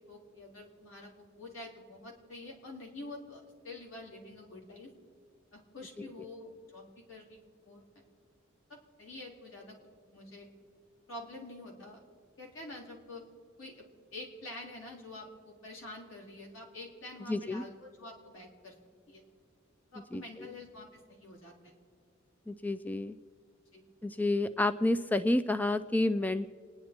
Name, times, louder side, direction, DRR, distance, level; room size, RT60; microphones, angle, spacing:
voice 1, 0.1-4.9 5.5-8.0 8.7-9.8 10.1-10.5 11.1-12.0 12.4-13.3 13.6-13.9 14.1-18.7 19.1-19.2 19.9-21.7 23.7-23.8, left 2 dB, 75° left, -1 dB, 3.8 m, -47 dB
voice 2, 17.3-17.6 20.1-20.5 22.5-23.2 24.0-26.5, left 2 dB, 10° left, 10 dB, 0.3 m, -30 dB
29.5 x 10.0 x 4.4 m, 2.2 s
head